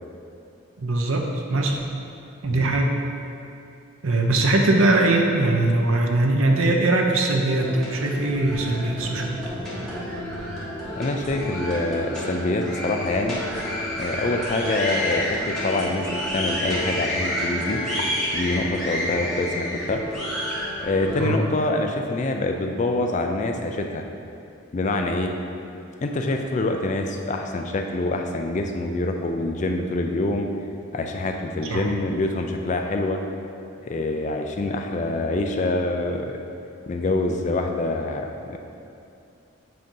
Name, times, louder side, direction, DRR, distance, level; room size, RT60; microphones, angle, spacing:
voice 1, 0.8-1.9 2.4-3.0 4.0-9.5 21.2-21.4 31.7-31.9, right 2 dB, 70° right, 2 dB, 0.6 m, -21 dB
sound 1, 7.5-21.2, left 1 dB, ahead, 1.1 m, -29 dB
voice 2, 11.0-13.4 14.0-17.8 18.3-20.0 20.8-24.0 24.7-25.3 26.0-30.5 30.9-33.2 33.9-36.3 36.9-38.6, left 2 dB, 35° left, 4 dB, 0.3 m, -25 dB
7.7 x 2.7 x 5.3 m, 2.6 s
head